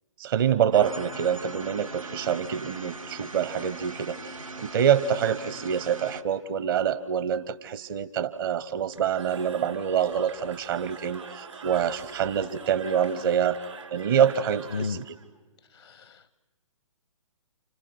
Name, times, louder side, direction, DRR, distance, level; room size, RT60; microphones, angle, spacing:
voice 1, 0.2-4.2 4.6-13.6 13.9-15.0, right 8 dB, 40° right, 14 dB, 0.9 m, -26 dB
sound 1, 0.7-6.2, right 3 dB, 85° right, 1.8 m, -40 dB
Cheering / Crowd, 8.9-15.3, right 5 dB, 70° right, 3.2 m, -44 dB
voice 2, 14.7-15.0 15.7-16.4, left 5 dB, 70° left, 17 dB, 0.8 m, -34 dB
29.5 x 28.5 x 6.2 m, 1.2 s
figure-of-eight pair, 125°, 17 cm